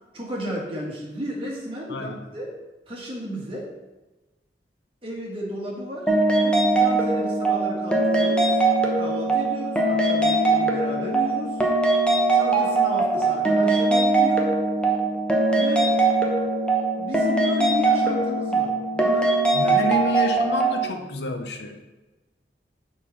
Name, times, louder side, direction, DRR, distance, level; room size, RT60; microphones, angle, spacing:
voice 1, 0.1-2.5 2.9-3.7 5.0-6.1 6.4-8.5 8.9-11.6 12.3-14.5 15.6-15.9 17.0-19.4 19.6-19.9, equal, 30° right, -3 dB, 1.8 m, -33 dB
voice 2, 1.9-2.3 19.5-21.8, left 2 dB, 70° left, 5 dB, 0.7 m, -29 dB
sound 1, 6.1-20.8, right 2 dB, 5° left, 0.9 m, -21 dB
7.0 x 4.4 x 5.8 m, 1.1 s
head